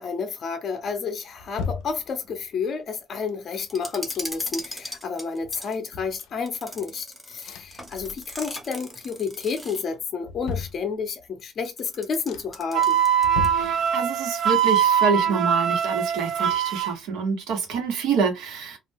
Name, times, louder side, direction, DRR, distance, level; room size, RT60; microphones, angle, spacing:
voice 1, 0.0-13.0, left 5 dB, 35° left, 0.5 m, -30 dB
sound 1, 0.8-2.6 3.3-4.7 5.1-5.2 5.4-7.0 7.4-8.6 8.9-9.4 9.9-11.4 11.8-11.9 12.3-12.7 13.2-14.4 14.7-16.5 16.8-16.9, left 5 dB, 85° left, 0.4 m, -38 dB
sound 2, 3.7-5.8 6.5-10.0 11.6-13.7 13.9-14.0 14.6-15.0, left 1 dB, ahead, 0.6 m, -39 dB
Wind instrument woodwind instrument, 12.7-16.9, right 9 dB, 60° right, 0.4 m, -22 dB
voice 2, 13.5-18.8, right 5 dB, 90° right, 1.0 m, -27 dB
2.3 x 2.2 x 3.3 m
cardioid pair, 165°, 0 cm